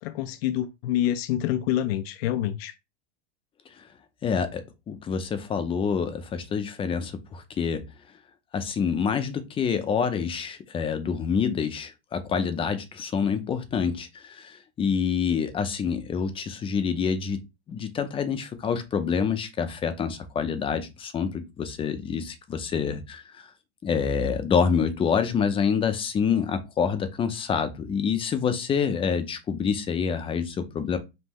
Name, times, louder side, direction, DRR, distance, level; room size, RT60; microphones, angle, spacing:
voice 1, 0.0-2.7, left 12 dB, 80° left, 0.5 m, -27 dB
voice 2, 4.2-7.8 8.5-17.4 17.7-23.5 23.8-31.0, left 6 dB, 20° left, 0.5 m, -27 dB
5.5 x 2.6 x 3.0 m
supercardioid pair, 145°, 30 cm